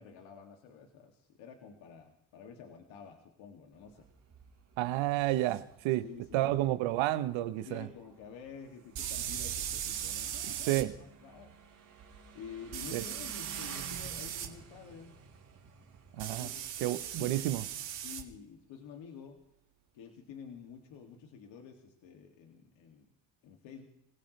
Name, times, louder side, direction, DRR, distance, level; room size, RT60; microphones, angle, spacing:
voice 1, 0.0-4.1 6.0-6.8 7.7-11.6 12.3-15.2 16.2-17.5 18.0-19.4 19.9-23.1 23.4-23.9, left 7 dB, 80° left, 2.4 m, -50 dB
Motorcycle, 3.7-16.7, right 6 dB, 40° right, 4.4 m, -52 dB
voice 2, 4.8-6.0 6.3-7.9 10.7-10.9 12.9-13.0 16.2-16.5 16.8-17.6, right 15 dB, 90° right, 1.0 m, -30 dB
sound 1, 5.5-5.6 8.9-10.8 12.7-14.5 16.2-18.2, right 10 dB, 75° right, 2.2 m, -38 dB
27.0 x 16.5 x 3.2 m
cardioid pair, 95°, 45 cm